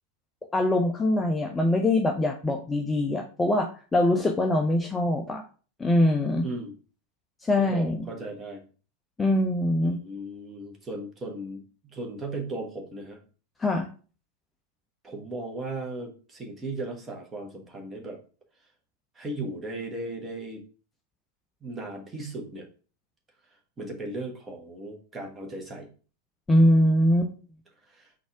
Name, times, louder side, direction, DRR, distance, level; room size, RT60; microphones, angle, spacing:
voice 1, 0.5-5.4 5.8-6.5 7.4-8.1 9.2-10.0 13.6-13.9 26.5-27.3, left 1 dB, 10° left, 3 dB, 0.4 m, -23 dB
voice 2, 7.6-8.6 9.8-13.2 15.0-18.2 19.1-20.6 21.6-22.7 23.8-25.9 27.9-28.1, right 2 dB, 20° right, 1 dB, 1.1 m, -36 dB
4.0 x 2.5 x 4.6 m, 0.38 s
figure-of-eight pair, 90°, 0 cm